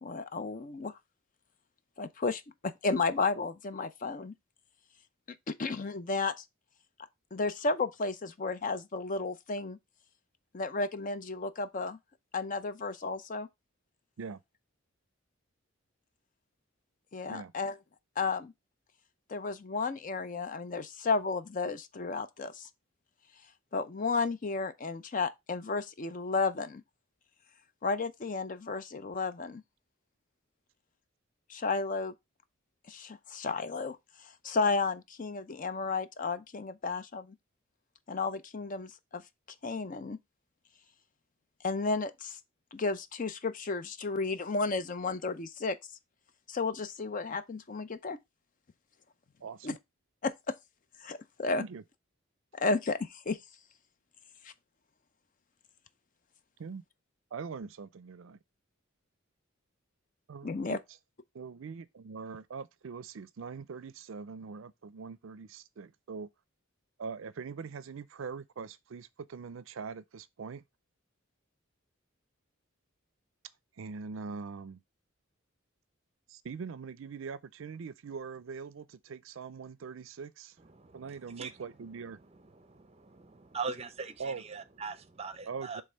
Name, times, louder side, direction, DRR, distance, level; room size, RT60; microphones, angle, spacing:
voice 1, 0.0-0.9 2.0-4.3 5.5-6.3 7.3-9.8 10.5-12.0 12.3-13.5 17.1-17.7 18.2-18.5 19.3-22.7 23.7-26.8 27.8-29.6 31.5-32.1 32.9-34.0 34.4-37.3 38.1-39.2 39.6-40.2 41.6-42.4 42.7-45.8 46.5-48.2 49.6-49.7 50.2-50.5 51.0-51.6 52.5-53.4 54.4-54.5 60.4-60.8, left 4 dB, 40° left, 0.5 m, -33 dB
voice 2, 49.4-49.8 51.6-51.8 56.6-56.8 57.3-58.4 60.3-60.8 61.3-66.3 67.0-70.6 73.8-74.8 76.3-80.6 80.9-82.2 84.2-84.4 85.5-85.8, right 5 dB, 70° right, 0.4 m, -42 dB
voice 3, 83.5-85.8, right 5 dB, 30° right, 0.6 m, -39 dB
5.3 x 3.4 x 5.5 m
head